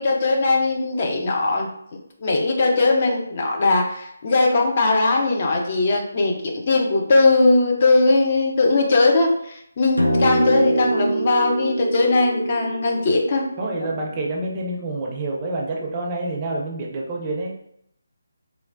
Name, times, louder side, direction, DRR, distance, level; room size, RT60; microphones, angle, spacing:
voice 1, 0.0-1.7 2.2-13.5 13.8-13.9, left 3 dB, 35° left, 1 dB, 0.4 m, -19 dB
sound 1, 10.0-14.5, right 2 dB, 85° left, 0.6 m, -25 dB
voice 2, 13.6-17.6, right 2 dB, 20° right, -2 dB, 0.5 m, -27 dB
3.0 x 2.2 x 2.5 m, 0.72 s
figure-of-eight pair, 150°, 0 cm